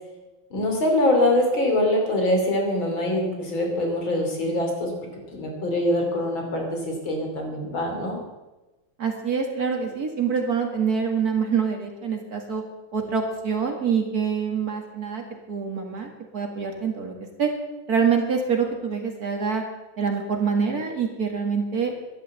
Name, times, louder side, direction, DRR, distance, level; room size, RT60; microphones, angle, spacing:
voice 1, 0.5-4.9 5.3-8.2, left 1 dB, 80° left, 2 dB, 3.8 m, -24 dB
voice 2, 9.0-12.6 12.9-17.5 17.9-19.6 20.0-21.9, right 6 dB, 50° right, 3 dB, 2.4 m, -25 dB
12.0 x 11.5 x 7.5 m, 1.1 s
omnidirectional pair, 2.1 m